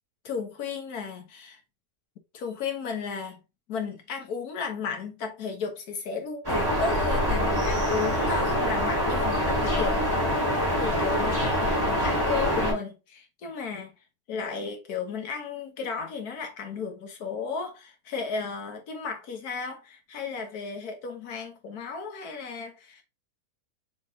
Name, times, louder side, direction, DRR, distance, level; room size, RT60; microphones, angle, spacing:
voice 1, 0.2-1.6 2.3-3.4 3.7-10.2 10.8-23.0, left 5 dB, 80° left, 1.5 m, -34 dB
sound 1, 6.4-12.7, equal, 15° right, 2.3 m, -25 dB
4.3 x 3.4 x 2.7 m
omnidirectional pair, 1.6 m